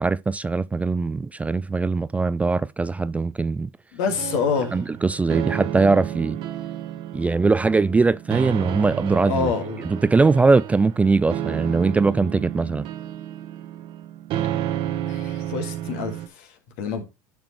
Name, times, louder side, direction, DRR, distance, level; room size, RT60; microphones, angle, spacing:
voice 1, 0.0-3.7 4.7-6.4 7.1-9.5 9.8-12.9, right 3 dB, 15° right, 0.3 m, -21 dB
voice 2, 3.9-4.8 9.3-9.8 15.1-16.1 16.8-17.0, left 5 dB, 70° left, 2.0 m, -26 dB
sound 1, 4.1-16.3, right 12 dB, 55° right, 1.1 m, -31 dB
10.5 x 5.2 x 3.1 m
hypercardioid pair, 80°, 10 cm